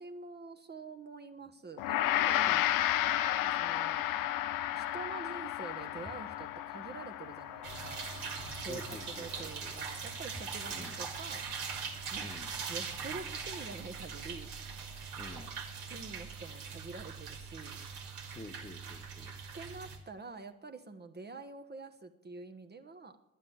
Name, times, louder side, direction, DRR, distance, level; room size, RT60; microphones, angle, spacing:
voice 1, 0.0-2.6 3.3-4.1 4.7-8.1 8.6-11.5 12.1-12.3 12.7-14.5 15.9-17.8 19.5-23.2, right 3 dB, 25° right, 7 dB, 1.0 m, -46 dB
Gong, 1.8-11.2, left 13 dB, 60° left, 0.7 m, -33 dB
sound 1, 7.6-20.0, right 6 dB, 65° right, 2.0 m, -41 dB
voice 2, 8.7-9.8 10.7-11.0 12.2-12.5 15.2-15.5 18.3-19.4, left 2 dB, 15° left, 8 dB, 1.2 m, -49 dB
11.0 x 10.0 x 7.2 m, 0.86 s
figure-of-eight pair, 45°, 38 cm